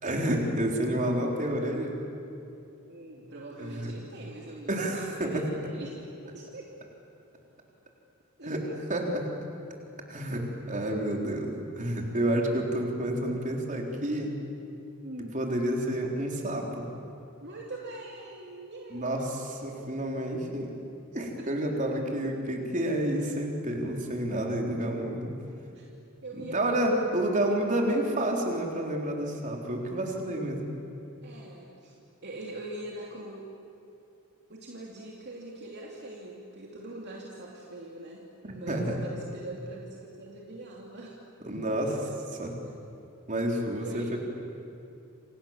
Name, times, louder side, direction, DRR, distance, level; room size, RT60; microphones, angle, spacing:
voice 1, 0.0-2.0 3.6-3.9 4.5-5.5 8.4-8.6 8.9-9.3 10.1-14.3 15.3-16.8 18.9-20.7 21.1-25.3 26.4-30.7 38.7-39.0 41.4-42.0 42.4-42.5 43.3-44.2, right 1 dB, 35° right, 1 dB, 3.9 m, -29 dB
voice 2, 2.9-6.0 6.3-6.7 8.4-8.7 15.0-15.4 17.4-20.0 21.4-21.7 25.7-25.9 26.2-26.9 31.2-31.9 32.2-33.4 34.5-41.2 41.9-42.0 43.7-44.2, right 2 dB, 50° right, -2 dB, 2.8 m, -43 dB
28.0 x 27.5 x 7.4 m, 2.7 s
head